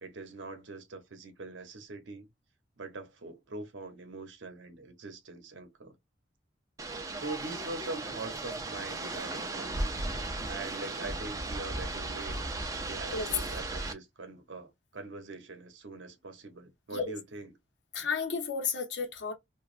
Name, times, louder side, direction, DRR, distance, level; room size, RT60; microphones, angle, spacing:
voice 1, 0.0-2.3 2.8-6.0 6.9-10.0 10.4-12.4 12.8-17.5, right 3 dB, 75° right, 0.7 m, -43 dB
sound 1, 6.8-13.9, right 2 dB, 20° right, 0.4 m, -36 dB
voice 2, 17.9-19.3, left 5 dB, 65° left, 0.8 m, -32 dB
3.0 x 2.3 x 2.4 m
head